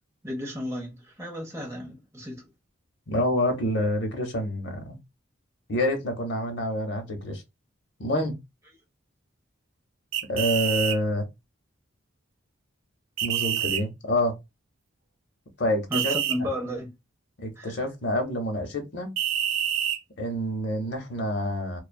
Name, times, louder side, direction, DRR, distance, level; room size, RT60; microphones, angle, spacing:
voice 1, 0.2-2.4 15.9-16.9 17.6-17.8, left 1 dB, 15° right, 0.7 m, -33 dB
voice 2, 3.1-5.0 5.7-7.4 8.0-8.4 10.3-11.3 13.2-14.4 15.6-16.1 16.4-16.5 17.4-19.1 20.2-21.8, left 1 dB, 60° left, 0.7 m, -27 dB
sound 1, 10.1-11.0 13.2-13.8 15.9-16.4 19.2-20.0, right 10 dB, 75° right, 0.3 m, -27 dB
2.5 x 2.2 x 2.2 m
head